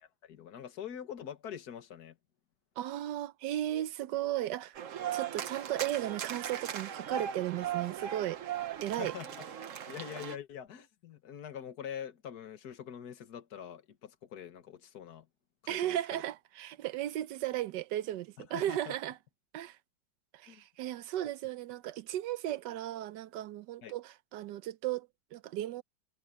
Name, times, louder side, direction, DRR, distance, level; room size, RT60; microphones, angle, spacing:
voice 1, 0.2-2.2 9.0-9.5 9.9-15.3 15.6-16.0 18.5-19.0 20.5-20.6 23.8-23.9, left 9 dB, 60° left, 1.9 m, -44 dB
voice 2, 2.8-4.8 5.1-8.4 8.8-9.1 15.7-19.2 19.5-19.8 20.3-25.8, right 13 dB, 75° right, 1.2 m, -35 dB
sound 1, 4.7-10.4, right 9 dB, 50° right, 1.1 m, -38 dB
omnidirectional pair, 2.0 m